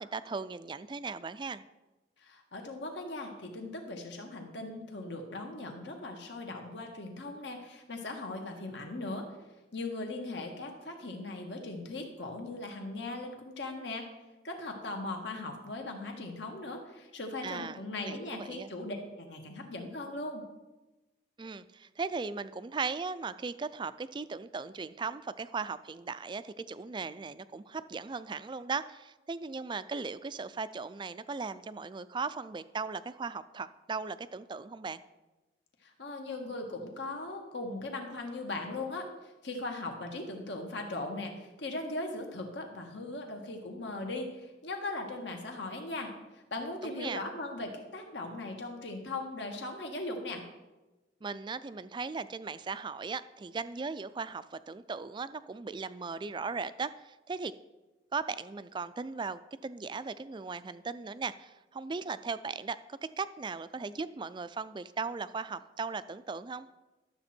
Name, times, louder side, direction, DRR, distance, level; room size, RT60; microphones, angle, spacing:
voice 1, 0.0-1.6 17.4-18.7 21.4-35.0 46.8-47.2 51.2-57.5 58.1-66.7, right 4 dB, 25° right, 14 dB, 0.3 m, -38 dB
voice 2, 2.2-9.3 9.7-14.1 14.4-20.4 35.8-50.4, left 2 dB, 80° left, 3 dB, 1.7 m, -39 dB
12.5 x 7.6 x 4.4 m, 1.1 s
head